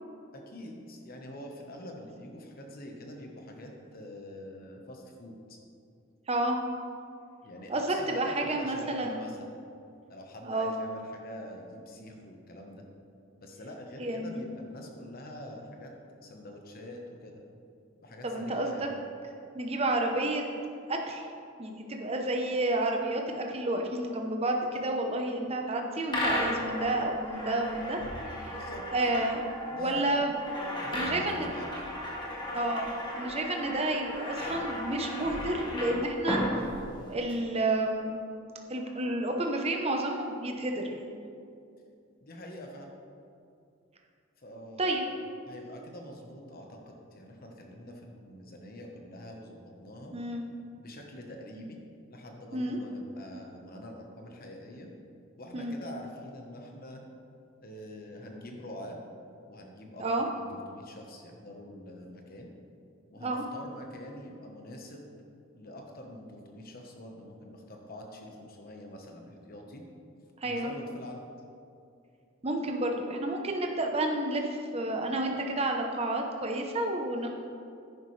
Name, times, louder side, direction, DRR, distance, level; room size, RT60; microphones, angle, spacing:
voice 1, 0.3-5.6 7.4-9.5 10.1-12.8 13.4-15.9 16.2-17.4 18.0-18.9 28.5-29.1 29.7-30.3 30.8-31.9 42.2-42.9 44.4-45.2 45.4-50.1 50.8-51.8 52.1-54.9 55.4-57.0 57.6-59.0 59.5-62.5 63.1-65.0 65.5-69.8 70.4-71.2, left 1 dB, 45° left, 2 dB, 1.2 m, -45 dB
voice 2, 6.3-6.6 7.7-9.2 10.4-10.7 14.0-14.4 18.2-18.7 19.5-20.4 20.9-21.3 21.6-28.6 28.9-29.4 29.7-30.3 30.9-31.5 32.5-32.9 33.2-36.6 37.1-38.2 38.7-41.1 44.8-45.0 50.1-50.4 52.5-52.8 55.5-55.8 60.0-60.3 63.2-63.4 70.4-70.7 72.4-77.3, right 1 dB, 30° right, 2 dB, 0.9 m, -30 dB
sound 1, 26.1-37.3, equal, 20° left, 1.5 m, -35 dB
10.0 x 9.7 x 3.3 m, 2.5 s
head